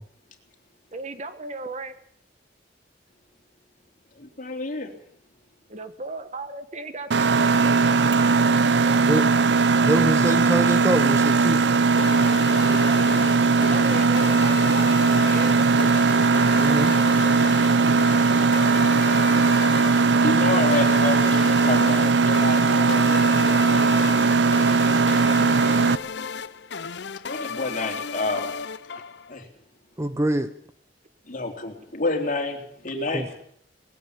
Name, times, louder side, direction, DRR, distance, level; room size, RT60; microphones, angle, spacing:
voice 1, 0.9-1.9 5.7-9.3 12.6-13.2 13.6-15.8, right 3 dB, 40° right, 10 dB, 1.5 m, -36 dB
voice 2, 4.2-4.9 17.8-18.3 20.2-23.9 27.3-28.5 29.3-29.5 31.3-32.6 32.8-33.4, left 3 dB, 50° left, 3 dB, 3.6 m, -29 dB
Mechanisms, 7.1-26.0, right 4 dB, 75° right, 0.8 m, -19 dB
voice 3, 9.8-11.6 16.4-17.0 30.0-30.6 33.1-33.3, right 1 dB, 15° right, 9 dB, 0.9 m, -25 dB
sound 1, 12.0-29.4, left 5 dB, 70° left, 0.7 m, -34 dB
20.0 x 15.5 x 8.8 m, 0.66 s
head